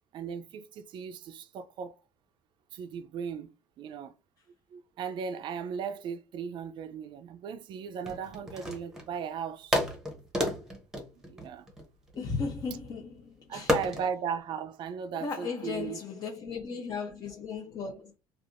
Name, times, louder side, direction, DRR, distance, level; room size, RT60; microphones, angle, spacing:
voice 1, 0.1-1.9 2.7-4.1 4.7-9.8 11.3-11.7 13.5-16.0, right 7 dB, 50° right, 0.4 m, -37 dB
sound 1, 8.0-9.2 9.7-12.2 13.7-14.1, left 1 dB, 5° right, 0.8 m, -31 dB
voice 2, 12.1-13.8 15.1-18.2, left 5 dB, 40° left, 0.7 m, -36 dB
3.3 x 2.4 x 2.5 m
cardioid pair, 120°, 10 cm